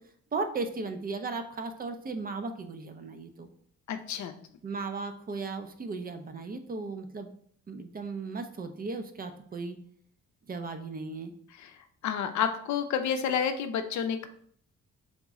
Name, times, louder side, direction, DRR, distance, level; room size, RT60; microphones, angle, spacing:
voice 1, 0.3-3.5 4.6-7.3 7.7-9.8 10.5-11.3, right 3 dB, 30° right, 8 dB, 0.5 m, -36 dB
voice 2, 3.9-4.3 12.0-14.3, left 7 dB, 70° left, 8 dB, 0.6 m, -29 dB
3.6 x 3.0 x 3.6 m, 0.62 s
cardioid pair, 90°, 30 cm